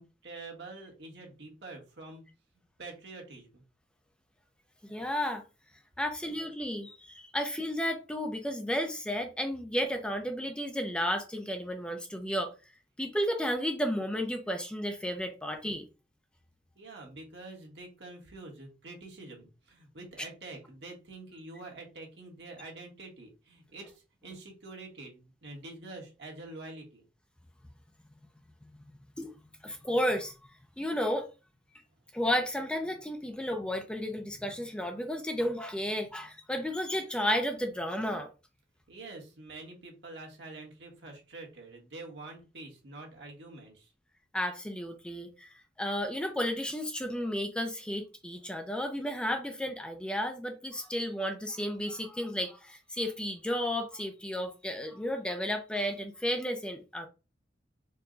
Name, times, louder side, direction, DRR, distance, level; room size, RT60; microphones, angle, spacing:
voice 1, 0.0-2.2 2.8-3.6 16.7-27.0 38.9-43.9, right 2 dB, 70° right, 1.4 m, -46 dB
voice 2, 4.8-5.4 6.0-12.5 13.0-15.9 29.2-29.4 29.6-30.3 30.8-31.3 32.1-38.3 44.3-45.5 45.8-57.1, equal, 5° left, 0.4 m, -33 dB
4.5 x 2.2 x 3.7 m
head